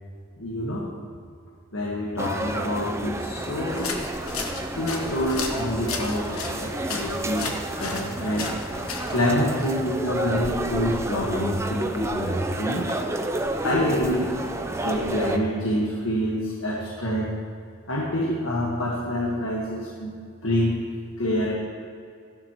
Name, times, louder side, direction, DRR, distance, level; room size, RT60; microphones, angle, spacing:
voice 1, 0.4-0.9 1.7-4.0 4.8-7.5 7.8-8.5 9.1-12.9 13.6-14.3 14.8-17.4 17.9-20.2 20.4-20.8 21.2-21.5, equal, 75° left, -3 dB, 1.5 m, -26 dB
sound 1, 2.2-15.4, right 1 dB, 15° right, 0.5 m, -30 dB
sound 2, 3.7-9.2, left 4 dB, 90° left, 1.3 m, -35 dB
14.0 x 11.5 x 3.0 m, 2.4 s
head